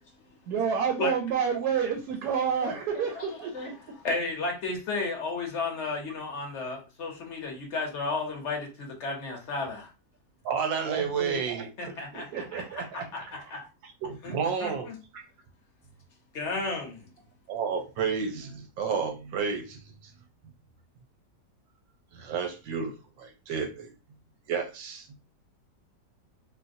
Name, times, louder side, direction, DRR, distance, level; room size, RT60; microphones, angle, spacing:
voice 1, 0.5-3.7 10.9-11.4 12.1-13.4, right 7 dB, 70° right, 3 dB, 1.0 m, -30 dB
voice 2, 2.6-9.9 11.8-13.6 14.2-15.0 16.3-17.1, left 3 dB, 55° left, 2 dB, 0.9 m, -34 dB
voice 3, 10.4-11.7 12.5-12.6 13.8-14.9 15.1-15.2 17.5-19.8 22.1-22.9 23.2-23.9 24.5-25.1, right 6 dB, 90° right, 5 dB, 1.4 m, -31 dB
4.0 x 2.1 x 2.6 m, 0.30 s
omnidirectional pair, 1.9 m